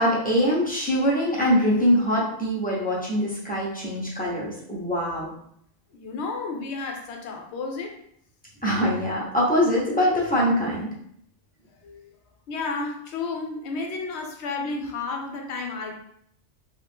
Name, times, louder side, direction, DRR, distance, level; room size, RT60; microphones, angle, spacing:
voice 1, 0.0-5.3 8.6-10.9, equal, 10° left, -6 dB, 0.6 m, -23 dB
voice 2, 5.9-8.0 8.7-8.9 11.8-12.0 12.5-15.9, left 3 dB, 65° left, 2 dB, 0.8 m, -32 dB
2.6 x 2.4 x 3.5 m, 0.69 s
omnidirectional pair, 1.3 m